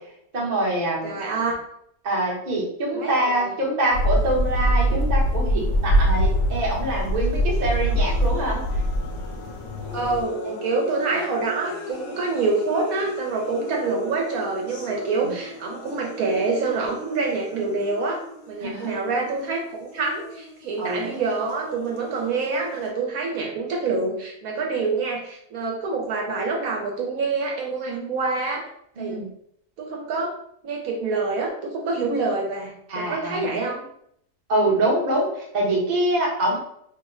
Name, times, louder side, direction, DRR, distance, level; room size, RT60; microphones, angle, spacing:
voice 1, 0.3-1.2 2.0-8.6 10.4-10.5 15.2-15.3 18.6-18.9 20.8-21.1 29.0-29.3 32.9-33.6 34.5-36.6, right 1 dB, 40° right, -3 dB, 0.7 m, -25 dB
voice 2, 1.0-1.5 2.9-3.5 9.9-18.2 18.5-28.6 29.0-29.2 29.8-30.3 30.6-33.8, right 3 dB, 70° right, 0 dB, 1.0 m, -26 dB
sound 1, 3.9-10.2, equal, 85° left, 1.2 m, -23 dB
sound 2, 6.9-22.9, equal, 55° left, 0.6 m, -39 dB
2.9 x 2.0 x 3.5 m, 0.71 s
omnidirectional pair, 1.7 m